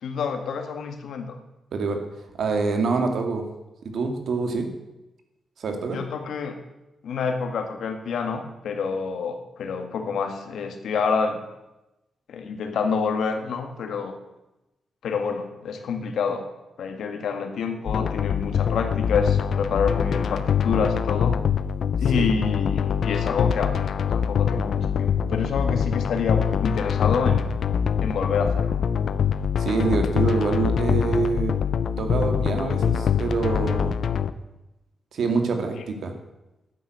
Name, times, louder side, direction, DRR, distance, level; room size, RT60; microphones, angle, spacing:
voice 1, 0.0-1.4 5.9-6.6 7.0-11.4 12.3-14.1 15.0-16.5 16.8-21.4 22.0-27.5 28.0-28.8, left 5 dB, 80° left, 6 dB, 1.8 m, -27 dB
voice 2, 1.7-2.0 2.4-3.5 3.9-4.7 5.6-6.0 22.1-22.3 29.6-31.5 32.0-34.0 35.1-36.1, right 4 dB, 65° right, 5 dB, 2.4 m, -25 dB
sound 1, 17.9-34.3, left 7 dB, 65° left, 0.7 m, -24 dB
11.5 x 9.9 x 8.0 m, 0.98 s
wide cardioid pair, 140°, 0 cm